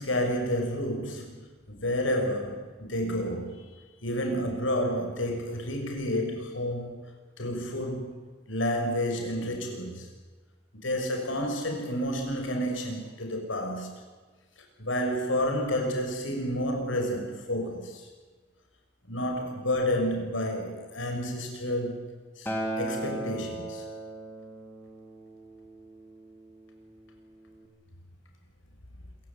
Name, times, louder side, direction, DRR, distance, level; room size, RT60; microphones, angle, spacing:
voice 1, 0.0-7.0 7.4-8.2 8.5-10.1 10.7-13.9 14.8-18.1 19.1-22.1 22.4-22.5 22.8-23.8, equal, 85° left, 6.5 m, -30 dB
Acoustic guitar, 22.5-26.8 27.6-27.7, right 1 dB, 10° left, 4.2 m, -37 dB
26.5 x 16.5 x 9.6 m
head